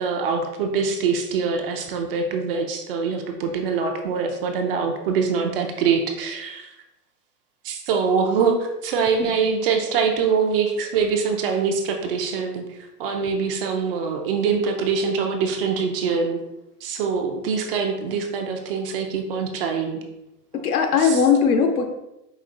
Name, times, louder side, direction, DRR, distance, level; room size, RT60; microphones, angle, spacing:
voice 1, 0.0-6.7 7.6-12.6 13.0-16.4 16.8-20.0 20.5-20.6 21.0-21.2, right 5 dB, 35° right, 3 dB, 0.5 m, -24 dB
voice 2, 20.5-21.9, left 6 dB, 65° left, 4 dB, 0.8 m, -19 dB
5.1 x 2.5 x 3.8 m, 0.91 s
hypercardioid pair, 130°, 49 cm